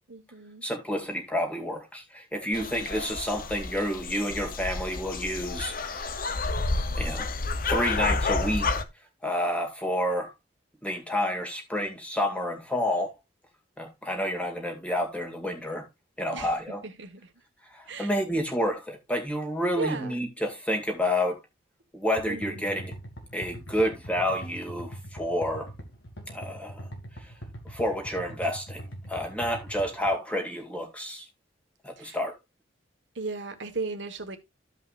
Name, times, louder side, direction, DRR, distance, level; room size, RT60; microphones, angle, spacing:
voice 1, 0.1-0.6 2.5-2.9 16.3-16.5 16.8-17.2 17.9-18.1 19.8-20.3 22.3-22.8 32.0-32.2 33.1-34.4, right 3 dB, 75° right, 1.6 m, -36 dB
voice 2, 0.6-6.2 7.0-7.3 7.7-8.8 9.2-10.3 10.8-13.1 13.8-15.9 16.2-16.8 17.7-21.4 21.9-22.9 23.3-25.7 26.3-26.9 27.7-28.8 29.1-31.2 31.8-32.3, equal, 5° left, 2.3 m, -29 dB
sound 1, 2.5-8.8, left 3 dB, 50° left, 0.8 m, -30 dB
sound 2, 22.2-30.1, right 1 dB, 85° left, 2.5 m, -42 dB
15.0 x 5.5 x 2.5 m
head